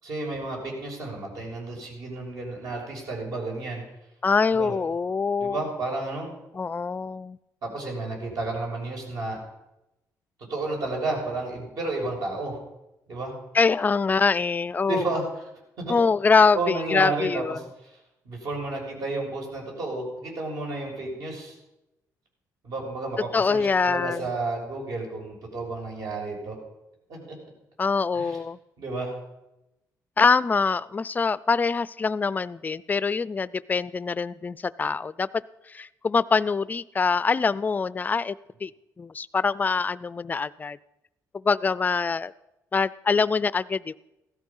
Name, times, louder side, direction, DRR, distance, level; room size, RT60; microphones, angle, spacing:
voice 1, 0.0-3.8 4.5-4.8 5.4-6.3 7.6-9.4 10.5-12.6 13.1-13.3 14.9-15.4 15.8-16.0 16.5-17.4 17.8-17.9 18.2-21.5 22.6-26.6 27.1-27.4 28.1-28.4 28.8-29.2, right 2 dB, 65° right, 0 dB, 6.7 m, -32 dB
voice 2, 4.2-5.6 6.5-7.4 13.5-15.2 15.9-17.6 23.3-24.3 27.8-28.6 30.2-35.4 35.7-38.4 38.6-38.7 39.0-40.8 41.3-42.3 42.7-43.9, left 4 dB, 25° left, 18 dB, 0.5 m, -24 dB
16.5 x 13.5 x 5.6 m, 0.91 s
cardioid pair, 115°, 7 cm